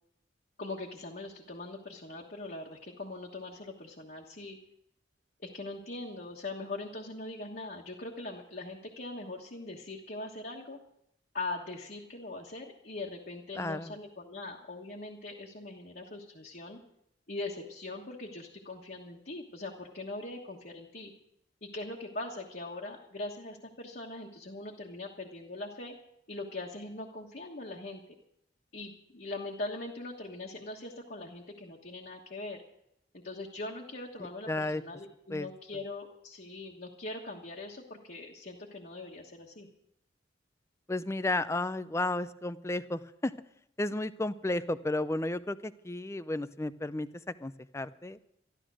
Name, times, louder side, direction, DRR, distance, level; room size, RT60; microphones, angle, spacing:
voice 1, 0.6-4.6 5.4-10.8 11.3-16.8 17.3-21.1 21.6-25.9 26.3-28.0 28.7-32.6 33.1-39.7, left 2 dB, 50° left, -1 dB, 1.4 m, -41 dB
voice 2, 13.5-14.0 34.2-34.8 35.3-35.5 40.9-43.3 43.8-47.1 47.4-48.2, left 2 dB, 15° left, 14 dB, 0.4 m, -33 dB
13.0 x 12.5 x 6.3 m, 0.78 s
head